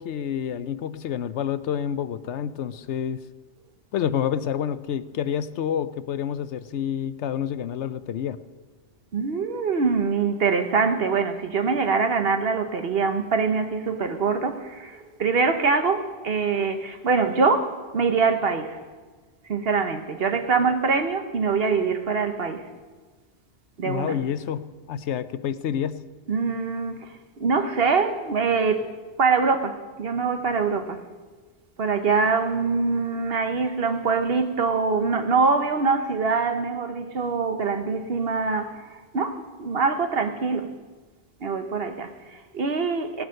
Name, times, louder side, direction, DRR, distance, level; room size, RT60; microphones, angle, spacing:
voice 1, 0.0-3.2 3.9-8.4 23.8-26.0, left 9 dB, 75° left, 0.9 m, -28 dB
voice 2, 9.1-18.8 19.5-22.7 23.8-24.2 26.3-28.9 29.2-31.0 31.8-40.7 41.4-43.2, right 4 dB, 60° right, 1.2 m, -24 dB
17.0 x 11.0 x 6.4 m
omnidirectional pair, 1.2 m